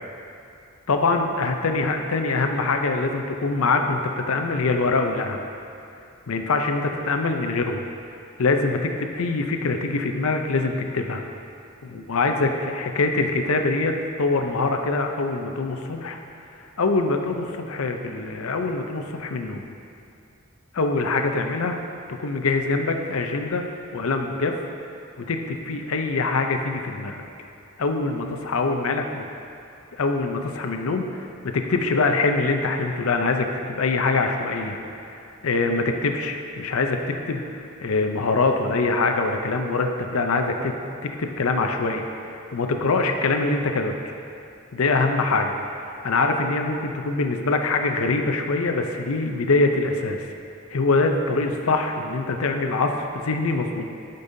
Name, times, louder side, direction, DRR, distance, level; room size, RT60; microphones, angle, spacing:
voice 1, 0.9-5.4 6.3-7.9 8.4-11.2 11.8-16.2 16.8-19.6 20.7-21.8 22.2-23.6 23.9-24.6 25.2-27.1 27.8-29.2 30.0-34.8 35.0-40.7 41.2-44.1 44.7-50.3 50.7-53.9, left 3 dB, 80° left, 5 dB, 0.6 m, -24 dB
12.0 x 5.4 x 2.7 m, 2.6 s
head